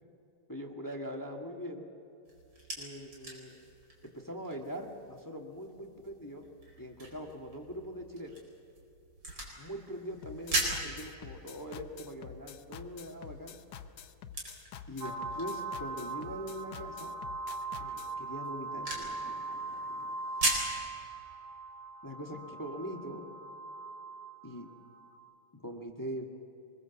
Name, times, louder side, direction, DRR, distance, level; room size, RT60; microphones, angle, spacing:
voice 1, 0.5-1.8 2.8-3.6 4.0-6.5 6.8-8.4 9.6-13.6 14.9-17.1 17.8-20.2 22.0-23.2 24.4-24.7 25.5-26.3, equal, 10° left, 1 dB, 1.3 m, -42 dB
sound 1, 2.3-20.8, right 2 dB, 60° right, 5.1 m, -41 dB
sound 2, 10.2-18.1, left 8 dB, 60° left, 1.2 m, -48 dB
sound 3, 15.0-25.2, right 3 dB, 80° right, 2.2 m, -41 dB
24.0 x 21.5 x 7.0 m, 2.6 s
omnidirectional pair, 2.4 m